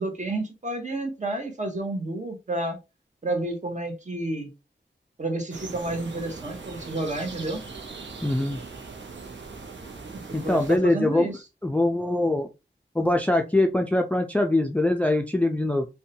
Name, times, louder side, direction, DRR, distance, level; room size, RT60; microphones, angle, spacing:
voice 1, 0.0-2.8 3.2-4.5 5.2-7.6 10.1-11.4, right 2 dB, 40° right, 0.8 m, -30 dB
sound 1, 5.5-10.8, right 4 dB, 80° right, 0.6 m, -40 dB
voice 2, 8.2-8.6 10.3-11.3 11.6-12.5 13.0-15.9, left 1 dB, 10° left, 0.3 m, -23 dB
2.6 x 2.2 x 2.7 m
wide cardioid pair, 85°, 19 cm